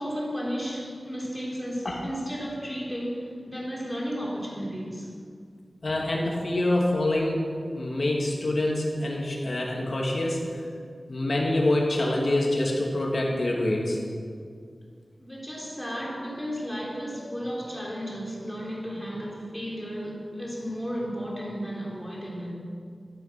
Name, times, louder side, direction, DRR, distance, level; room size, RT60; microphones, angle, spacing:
voice 1, 0.0-5.1 15.2-22.5, equal, 10° left, -3 dB, 3.5 m, -33 dB
voice 2, 5.8-7.5 7.7-10.5 11.1-14.0, left 1 dB, 55° left, -2 dB, 2.8 m, -26 dB
13.5 x 10.5 x 6.0 m, 2.2 s
wide cardioid pair, 80°, 0 cm